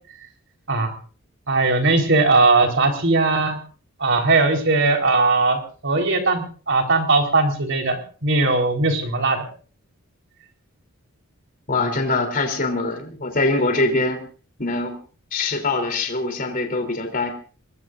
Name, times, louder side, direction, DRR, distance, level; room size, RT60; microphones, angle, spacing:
voice 1, 1.5-3.6 4.0-9.5, right 3 dB, 60° right, 3 dB, 4.1 m, -19 dB
voice 2, 11.7-14.2 14.6-15.0 15.3-17.3, left 2 dB, 40° left, 4 dB, 3.3 m, -23 dB
26.0 x 21.0 x 2.6 m, 0.40 s
head